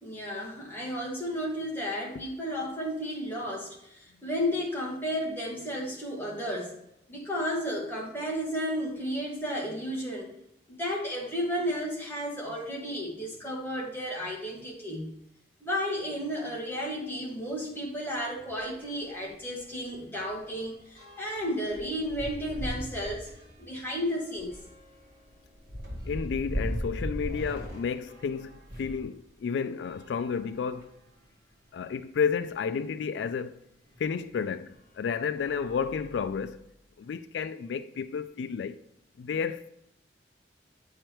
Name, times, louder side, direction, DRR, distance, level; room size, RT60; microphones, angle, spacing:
voice 1, 0.0-6.8 7.1-10.3 10.7-15.1 15.6-23.3 23.6-24.6, equal, 15° left, 1.7 m, -33 dB
sound 1, 18.6-18.8 19.1-19.2 19.6-29.1 29.8-31.1 31.8-31.9 32.1-32.2 33.9-34.1 34.7-34.9 35.3-36.6, equal, 55° right, 1.6 m, -39 dB
voice 2, 26.1-30.9 31.7-33.6 34.0-36.6 37.0-38.8 39.2-39.7, left 6 dB, 85° left, 0.3 m, -31 dB
8.7 x 4.8 x 3.0 m
head